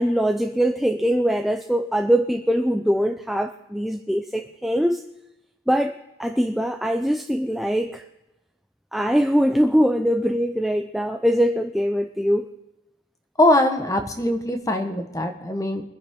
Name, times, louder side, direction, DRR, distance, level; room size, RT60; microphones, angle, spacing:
voice 1, 0.0-5.0 5.7-8.0 8.9-12.5, equal, ahead, 0.4 m, -22 dB
voice 2, 13.4-15.8, left 1 dB, 15° left, 1.1 m, -21 dB
23.5 x 10.0 x 3.7 m
head